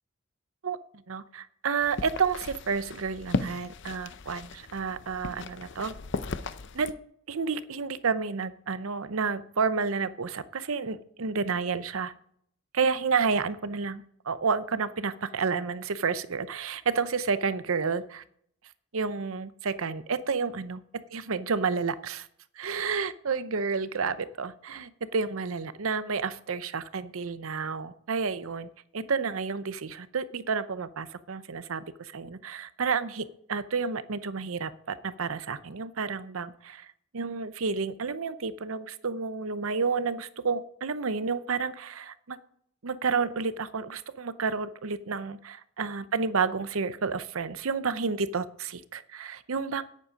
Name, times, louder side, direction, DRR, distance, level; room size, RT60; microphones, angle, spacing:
voice 1, 1.1-5.9 6.7-6.9 7.3-12.1 12.7-18.2 18.9-22.3 22.6-36.9 37.1-42.4 42.8-49.8, right 5 dB, 80° right, 14 dB, 0.7 m, -30 dB
sound 1, 1.8-6.9, left 3 dB, 60° left, 0.6 m, -36 dB
9.9 x 9.3 x 5.1 m, 0.66 s
head